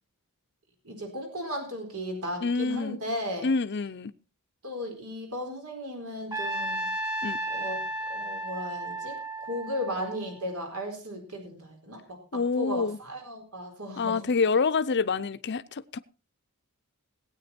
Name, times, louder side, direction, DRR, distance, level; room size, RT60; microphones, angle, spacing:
voice 1, 0.8-3.5 4.6-6.9 7.5-7.8 8.1-14.3, equal, 80° right, 4.4 m, -36 dB
voice 2, 2.4-3.0 3.4-4.1 7.2-7.4 12.3-13.0 14.0-16.0, left 4 dB, 50° left, 0.6 m, -27 dB
Trumpet, 6.3-10.5, right 1 dB, 20° right, 1.9 m, -33 dB
19.0 x 8.9 x 4.4 m
head